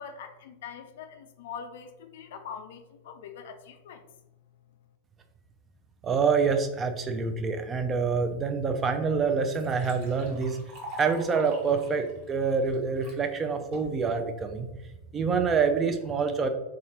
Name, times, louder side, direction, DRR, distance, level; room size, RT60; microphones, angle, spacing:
voice 1, 0.0-4.1, left 7 dB, 55° left, 8 dB, 0.3 m, -43 dB
voice 2, 6.0-10.6 10.9-14.7 15.1-16.5, right 5 dB, 20° right, 6 dB, 0.4 m, -26 dB
Liquid, 8.7-8.8 9.2-13.2 13.7-14.2, equal, 45° right, 1.1 m, -45 dB
3.5 x 2.8 x 2.7 m, 0.99 s
figure-of-eight pair, 90°, 0 cm